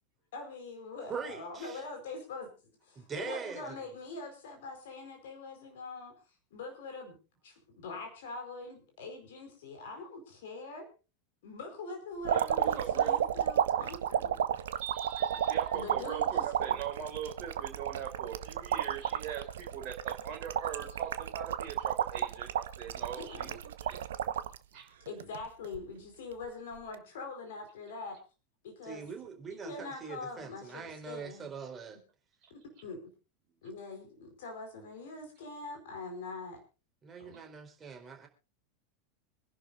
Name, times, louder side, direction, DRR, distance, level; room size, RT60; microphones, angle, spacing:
voice 1, 0.3-6.1 6.5-7.2 7.4-10.9 11.4-14.4 15.7-16.3 23.2-23.6 25.1-28.2 28.6-29.1 29.5-31.5 32.8-33.0 33.6-36.6 37.2-37.4, left 3 dB, 60° left, 4.6 m, -43 dB
voice 2, 1.1-1.8 3.0-3.8 28.8-32.0 37.0-38.3, right 6 dB, 25° right, 4.3 m, -42 dB
sound 1, 12.2-24.6 25.1-25.8 26.8-27.0, right 10 dB, 65° right, 0.9 m, -32 dB
voice 3, 12.3-13.2 14.8-24.0 24.7-25.0 32.4-32.5 37.3-37.4, right 8 dB, 40° right, 3.8 m, -41 dB
26.5 x 11.5 x 2.6 m
figure-of-eight pair, 85°, 0 cm